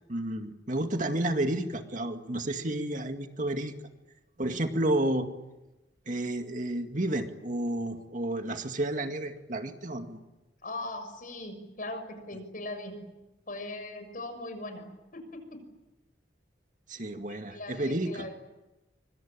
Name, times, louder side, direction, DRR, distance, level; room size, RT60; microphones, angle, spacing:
voice 1, 0.1-3.7 4.4-5.3 6.1-10.2 16.9-18.3, right 1 dB, 45° right, 5 dB, 2.1 m, -31 dB
voice 2, 10.6-13.0 13.5-15.6 17.5-18.3, left 2 dB, 50° left, 7 dB, 6.6 m, -40 dB
25.5 x 25.0 x 8.9 m, 1.0 s
head